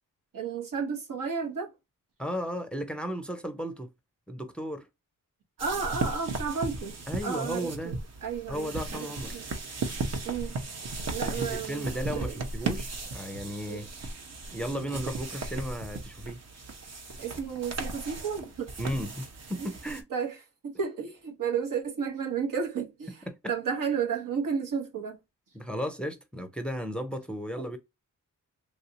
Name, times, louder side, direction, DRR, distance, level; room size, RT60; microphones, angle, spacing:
voice 1, 0.3-1.7 5.6-7.0 7.2-7.9 8.2-9.1 9.3-9.4 10.2-10.6 11.1-12.4 13.7-13.8 17.2-18.7 19.6-19.7 20.1-20.3 20.6-23.2 23.5-25.2 27.7-27.8, right 6 dB, 85° right, 1.2 m, -32 dB
voice 2, 2.2-3.9 4.3-4.9 7.1-8.0 8.5-9.4 11.2-13.9 14.5-16.4 18.8-20.0 23.3-23.4 25.5-27.8, equal, 5° left, 0.5 m, -35 dB
sound 1, 5.6-20.0, right 3 dB, 55° right, 0.8 m, -36 dB
3.3 x 2.7 x 2.7 m
wide cardioid pair, 115°, 32 cm